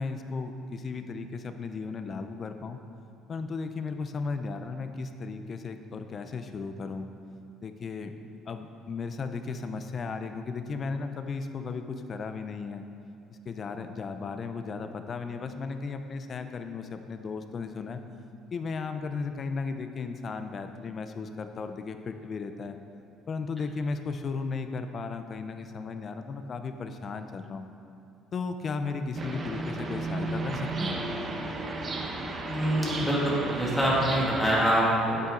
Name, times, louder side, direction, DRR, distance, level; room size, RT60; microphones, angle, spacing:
voice 1, 0.0-2.8 3.3-7.1 7.6-8.1 8.5-12.9 13.5-18.0 18.5-22.8 23.3-27.7 28.3-31.0, left 4 dB, 35° left, 8 dB, 0.6 m, -35 dB
sound 1, 29.1-34.5, right 2 dB, 30° right, 0.9 m, -34 dB
voice 2, 32.5-35.3, right 1 dB, ahead, -6 dB, 2.1 m, -25 dB
8.9 x 8.5 x 3.8 m, 2.6 s
cardioid pair, 130°, 0 cm